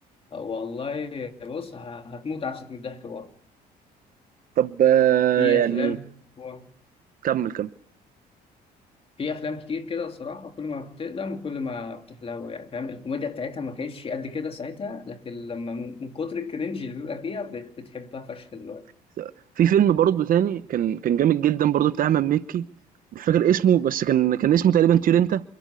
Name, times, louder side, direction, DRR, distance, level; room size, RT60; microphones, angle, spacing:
voice 1, 0.3-3.3 5.4-6.1 6.4-6.7 9.2-18.9, left 4 dB, 35° left, 2.6 m, -33 dB
voice 2, 4.6-6.0 7.2-7.7 19.2-19.3 19.6-22.6 23.1-25.4, right 10 dB, 55° right, 1.0 m, -20 dB
28.5 x 12.0 x 8.4 m
cardioid pair, 110°, 17 cm